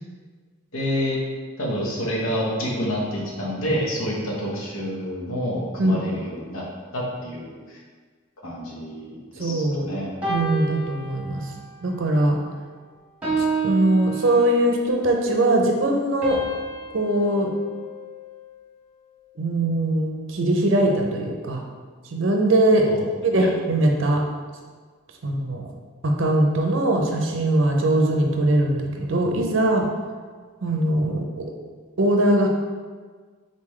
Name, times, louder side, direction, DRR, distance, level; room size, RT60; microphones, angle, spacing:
voice 1, 0.7-1.2 1.6-6.6 6.9-7.8 8.4-10.1 22.9-23.0 23.3-23.5, equal, 80° left, -3 dB, 1.0 m, -28 dB
voice 2, 9.4-9.9 10.3-11.5 11.8-12.4 13.4-16.4 16.9-17.5 19.4-21.6 22.1-22.9 23.2-24.2 25.2-25.7 26.0-29.9 30.6-31.5 32.0-32.5, right 1 dB, 65° right, 2 dB, 0.6 m, -21 dB
sound 1, 10.2-11.8 12.2-12.5 13.2-14.9 16.2-18.6, right 2 dB, 5° right, 1.2 m, -30 dB
4.0 x 3.8 x 3.1 m, 1.5 s
head